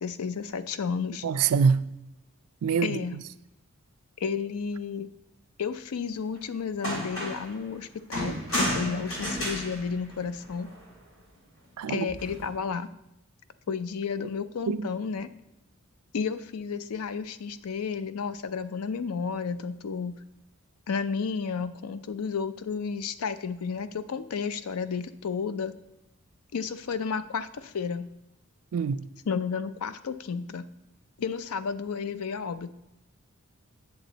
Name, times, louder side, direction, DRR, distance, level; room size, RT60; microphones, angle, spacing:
voice 1, 0.0-1.2 2.8-3.2 4.2-5.1 5.6-10.7 11.9-12.9 13.7-15.3 16.1-20.2 20.9-25.7 26.5-28.1 29.3-30.7 31.2-32.7, left 5 dB, 80° left, 0.5 m, -32 dB
voice 2, 1.2-1.8 2.6-3.0 11.8-12.1 14.7-14.9 28.7-29.0, right 6 dB, 85° right, 0.4 m, -24 dB
sound 1, 6.4-6.5 6.8-7.5 8.1-10.8 12.1-12.5, equal, 65° left, 3.3 m, -32 dB
8.3 x 6.9 x 3.9 m
head